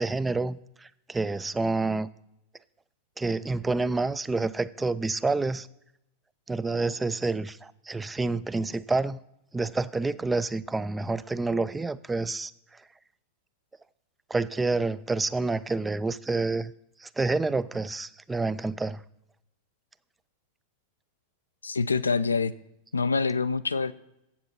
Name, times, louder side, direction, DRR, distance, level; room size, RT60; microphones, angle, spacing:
voice 1, 0.0-2.1 3.2-5.7 6.5-9.2 9.5-12.5 14.3-16.7 17.0-19.0, right 3 dB, 10° right, 0.3 m, -28 dB
voice 2, 21.6-22.5 22.9-23.9, left 4 dB, 75° left, 0.3 m, -25 dB
8.2 x 7.3 x 5.8 m
figure-of-eight pair, 90°, 0 cm